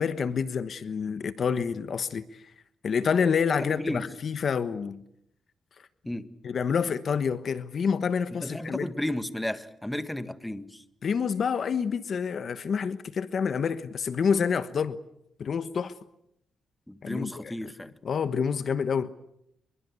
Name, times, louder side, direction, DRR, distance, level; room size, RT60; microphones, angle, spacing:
voice 1, 0.0-2.2 2.8-5.0 6.4-8.9 11.0-15.0 15.4-15.9 17.0-17.7 18.0-19.1, left 6 dB, 60° left, 1.2 m, -28 dB
voice 2, 3.6-4.1 6.0-6.3 8.4-10.8 16.9-17.9, left 1 dB, 5° left, 1.7 m, -33 dB
27.0 x 23.0 x 8.3 m
cardioid pair, 80°, 0 cm